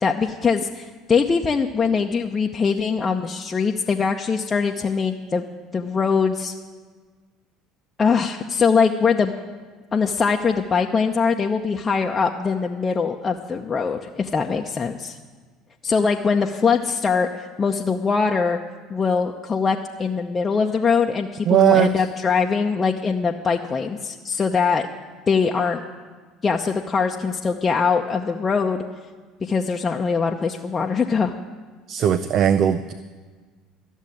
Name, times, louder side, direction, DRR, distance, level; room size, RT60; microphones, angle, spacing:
voice 1, 0.0-5.4 5.7-6.5 8.0-9.3 9.9-15.2 15.8-18.6 18.9-24.9 25.3-25.8 26.4-28.8 29.4-31.3, left 5 dB, 30° left, 1 dB, 0.8 m, -22 dB
voice 2, 21.5-22.1 31.9-32.9, right 10 dB, 50° right, 13 dB, 0.5 m, -18 dB
13.5 x 7.3 x 10.0 m, 1.4 s
hypercardioid pair, 70°, 0 cm